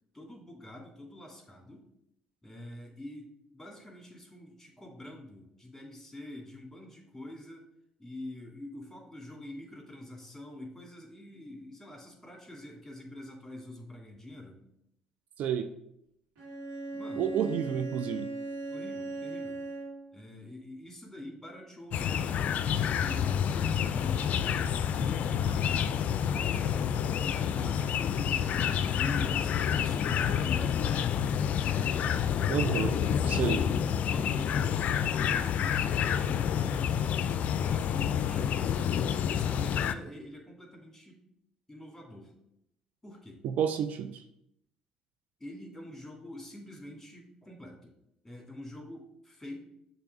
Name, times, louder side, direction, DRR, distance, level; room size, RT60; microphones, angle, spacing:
voice 1, 0.1-1.8 2.4-3.3 3.5-7.6 8.0-14.6 16.9-17.3 18.7-19.6 20.1-26.9 27.2-31.8 32.8-41.2 41.7-42.3 43.0-43.4 45.4-47.9 48.2-49.6, left 1 dB, 5° left, -1 dB, 2.5 m, -46 dB
voice 2, 15.4-15.7 17.2-18.3 32.5-33.0 33.3-33.6 43.4-44.2, right 8 dB, 65° right, 9 dB, 0.4 m, -30 dB
Bowed string instrument, 16.3-20.2, right 2 dB, 80° right, 1.8 m, -38 dB
sound 1, 21.9-40.0, left 8 dB, 60° left, 0.4 m, -28 dB
6.7 x 3.0 x 4.7 m, 0.78 s
hypercardioid pair, 55°, 3 cm